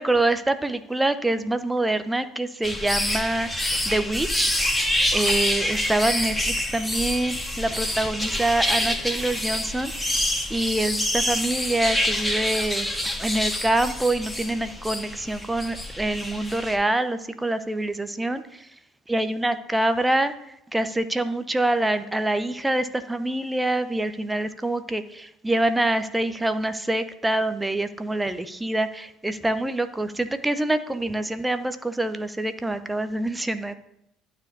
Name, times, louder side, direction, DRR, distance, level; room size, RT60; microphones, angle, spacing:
voice 1, 0.0-4.5 5.1-9.9 10.5-12.9 13.2-18.7 19.1-20.3 20.7-33.7, right 2 dB, 10° right, 10 dB, 0.8 m, -25 dB
sound 1, 2.6-16.8, left 1 dB, 5° left, 1.7 m, -27 dB
12.0 x 4.4 x 7.0 m, 0.79 s
figure-of-eight pair, 55°, 0 cm